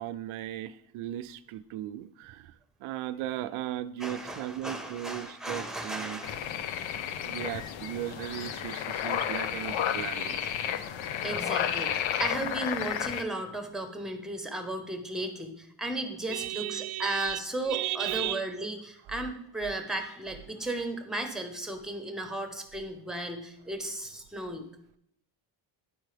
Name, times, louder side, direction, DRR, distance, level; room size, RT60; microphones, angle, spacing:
voice 1, 0.0-2.5 2.8-6.2 7.2-10.7 16.3-17.4 17.7-18.5, right 13 dB, 80° right, 14 dB, 0.6 m, -36 dB
voice 2, 4.0-6.5 11.2-24.7, right 1 dB, ahead, 5 dB, 1.1 m, -35 dB
sound 1, 6.2-13.2, left 9 dB, 70° left, 0.7 m, -32 dB
10.0 x 4.5 x 3.3 m, 0.75 s
cardioid pair, 90°, 49 cm